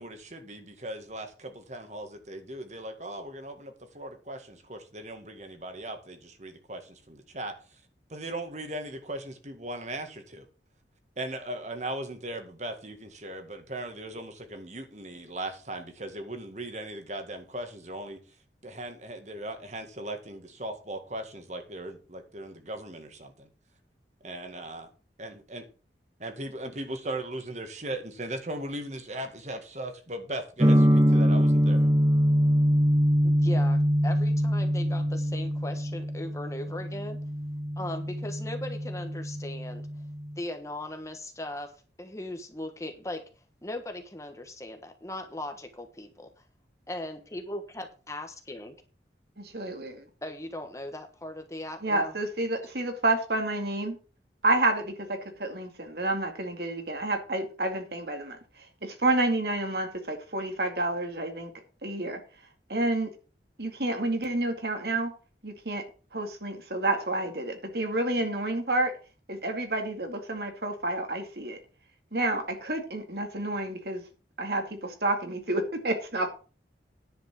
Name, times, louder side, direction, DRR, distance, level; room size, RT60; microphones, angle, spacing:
voice 1, 0.0-7.5 8.1-10.4 11.2-18.2 18.6-23.5 24.2-24.9 25.2-25.7 26.2-31.9, right 1 dB, 40° right, 6 dB, 1.9 m, -38 dB
sound 1, 30.6-40.4, equal, 20° right, 0.6 m, -24 dB
voice 2, 33.2-37.2 37.8-39.9 40.4-41.7 42.0-43.2 43.6-46.3 46.9-48.8 50.2-52.1, left 1 dB, 15° left, 6 dB, 1.3 m, -38 dB
voice 3, 49.4-50.0 51.8-54.0 54.4-58.4 58.8-61.5 61.8-62.2 62.7-63.1 63.6-65.1 65.4-65.8 66.1-68.9 69.3-71.6 72.1-74.0 74.4-76.3, right 2 dB, 65° right, 5 dB, 2.3 m, -29 dB
10.0 x 5.4 x 7.5 m, 0.36 s
head